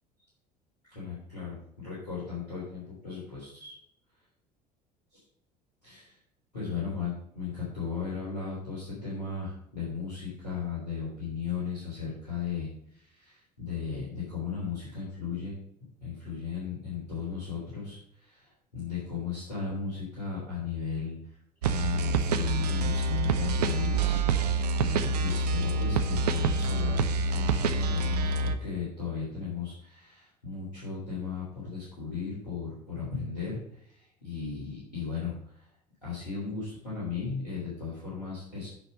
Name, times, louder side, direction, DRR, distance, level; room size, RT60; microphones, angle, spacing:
voice 1, 0.9-3.7 5.8-6.1 6.5-15.6 16.0-18.4 18.7-21.2 21.6-24.2 24.5-27.0 27.3-33.6 34.0-35.3 36.0-38.7, left 5 dB, 85° left, -9 dB, 3.6 m, -36 dB
sound 1, 21.6-28.6, right 3 dB, 75° right, 0.7 m, -27 dB
9.0 x 5.8 x 6.4 m, 0.71 s
figure-of-eight pair, 65°, 21 cm